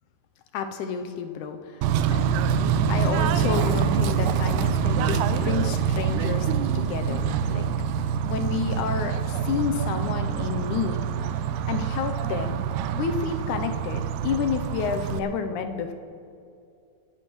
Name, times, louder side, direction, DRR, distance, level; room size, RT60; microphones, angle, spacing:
voice 1, 0.5-1.8 2.9-6.5 6.7-7.7 8.2-11.0 11.7-12.6 12.9-15.9, left 6 dB, 85° left, 6 dB, 2.2 m, -30 dB
Bird / Train, 1.8-15.2, right 7 dB, 80° right, 2.0 m, -25 dB
25.0 x 10.5 x 3.1 m, 2.4 s
omnidirectional pair, 3.5 m